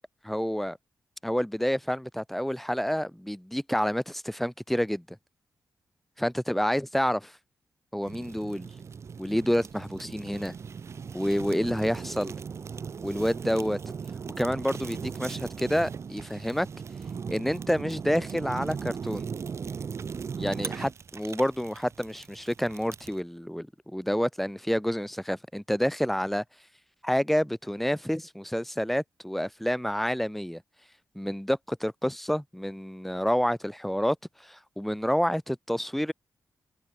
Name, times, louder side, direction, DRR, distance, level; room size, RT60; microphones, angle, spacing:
voice 1, 0.2-0.8 1.2-5.2 6.2-7.3 7.9-8.7 9.2-10.5 11.1-12.3 13.0-13.8 14.4-16.7 17.3-19.3 20.4-26.4 27.0-30.6 31.2-34.2 34.4-36.1, equal, 5° left, 2.0 m, -28 dB
Fire, 8.1-23.2, right 6 dB, 45° right, 0.5 m, -38 dB
cardioid pair, 100°, 6 cm